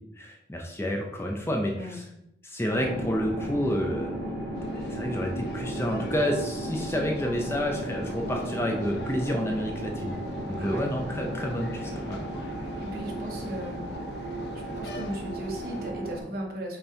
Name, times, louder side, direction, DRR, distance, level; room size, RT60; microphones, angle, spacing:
voice 1, 0.2-2.0 2.4-4.2 4.7-10.2 10.5-12.2, equal, 15° left, 1 dB, 0.6 m, -29 dB
sound 1, 2.7-16.2, right 1 dB, 70° right, 2.1 m, -35 dB
sound 2, 4.5-15.9, left 3 dB, 65° left, 0.6 m, -47 dB
voice 2, 10.6-10.9 12.8-13.8 14.5-16.8, right 1 dB, 55° right, 0 dB, 1.2 m, -36 dB
5.5 x 4.0 x 4.4 m, 0.80 s
head